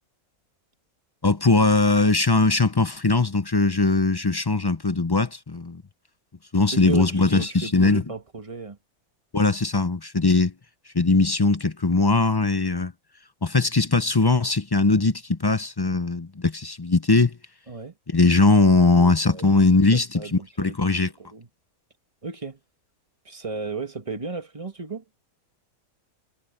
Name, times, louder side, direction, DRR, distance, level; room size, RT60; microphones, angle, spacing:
voice 1, 1.2-5.8 6.5-8.0 9.3-10.5 10.9-12.9 13.4-17.4 18.1-20.2 20.6-21.1, left 3 dB, 30° left, 0.5 m, -20 dB
voice 2, 6.7-8.8 17.7-18.0 18.8-21.5 22.2-22.6 23.3-25.0, right 4 dB, 25° right, 1.6 m, -35 dB
omnidirectional pair, 1.5 m